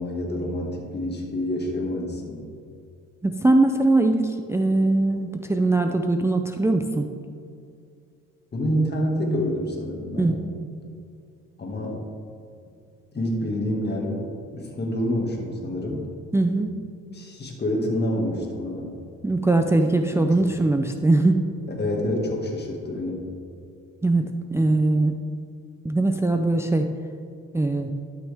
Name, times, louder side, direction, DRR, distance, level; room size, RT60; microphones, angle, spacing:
voice 1, 0.0-2.4 8.5-10.3 11.6-12.0 13.1-14.2 14.5-16.1 17.1-18.9 20.1-20.5 21.8-23.3, left 1 dB, 35° left, -1 dB, 1.9 m, -27 dB
voice 2, 3.2-7.1 10.2-10.5 16.3-16.7 19.2-21.5 24.0-25.1 25.8-26.9 27.5-27.9, right 2 dB, 10° right, 5 dB, 0.4 m, -21 dB
12.0 x 6.1 x 3.5 m, 2.4 s
cardioid pair, 90°, 30 cm